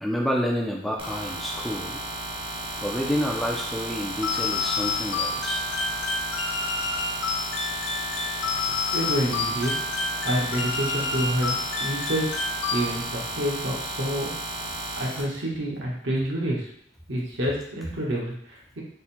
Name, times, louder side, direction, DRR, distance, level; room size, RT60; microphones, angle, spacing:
voice 1, 0.0-2.0 2.8-5.6, equal, ahead, -1 dB, 0.4 m, -28 dB
sound 1, 1.0-15.2, right 1 dB, 30° right, 0.7 m, -34 dB
sound 2, 4.2-13.3, left 4 dB, 80° left, 0.4 m, -29 dB
voice 2, 8.7-9.9 10.2-12.2 12.7-14.4 15.0-16.7 17.1-18.8, right 1 dB, 75° right, -3 dB, 1.1 m, -28 dB
3.6 x 2.1 x 4.3 m, 0.70 s
head